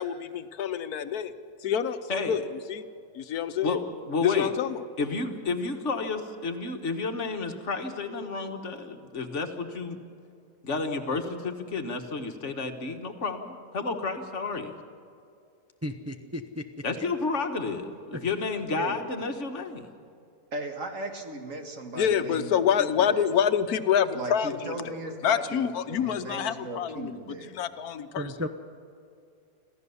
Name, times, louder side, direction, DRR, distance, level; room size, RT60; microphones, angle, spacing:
voice 1, 0.6-1.3 1.6-2.4 2.7-2.9 3.1-3.8 4.2-4.9 21.9-25.0 25.2-27.1 27.5-28.3, left 8 dB, 85° left, 11 dB, 1.3 m, -26 dB
voice 2, 3.6-4.5 5.0-10.0 10.6-14.8 16.8-20.0, left 4 dB, 55° left, 6 dB, 1.6 m, -31 dB
voice 3, 15.8-16.6 18.1-18.4 28.2-28.5, left 1 dB, 15° right, 4 dB, 0.7 m, -34 dB
voice 4, 20.5-23.3 24.1-27.5, right 2 dB, 60° right, 4 dB, 2.1 m, -37 dB
26.0 x 15.0 x 7.0 m, 2.5 s
omnidirectional pair, 1.5 m